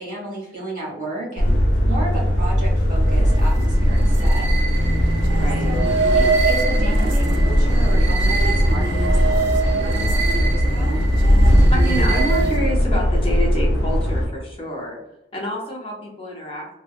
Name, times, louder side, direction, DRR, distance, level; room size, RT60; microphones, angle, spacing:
voice 1, 0.0-1.5 1.8-4.5 5.0-5.2 5.6-5.9 6.1-11.0, right 1 dB, 45° right, -4 dB, 1.2 m, -33 dB
sound 1, 1.4-14.3, equal, 85° left, 0.5 m, -18 dB
sound 2, 3.0-12.8, right 3 dB, 85° right, 0.3 m, -24 dB
voice 2, 5.4-5.7 11.5-15.0 15.3-16.7, equal, 30° left, -2 dB, 0.5 m, -28 dB
2.8 x 2.2 x 2.4 m, 0.95 s
head